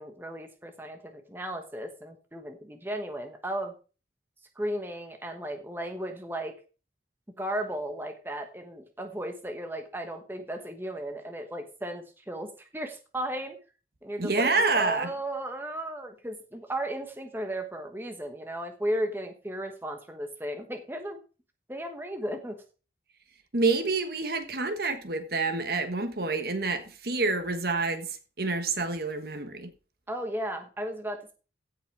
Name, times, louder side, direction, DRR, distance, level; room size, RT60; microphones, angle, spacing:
voice 1, 0.0-3.7 4.6-6.6 7.4-13.6 14.0-21.2 21.7-22.6 30.1-31.3, right 1 dB, 10° right, 1.2 m, -35 dB
voice 2, 14.2-15.1 23.5-28.1 28.4-29.7, right 3 dB, 55° right, 1.4 m, -27 dB
16.0 x 5.6 x 4.6 m
head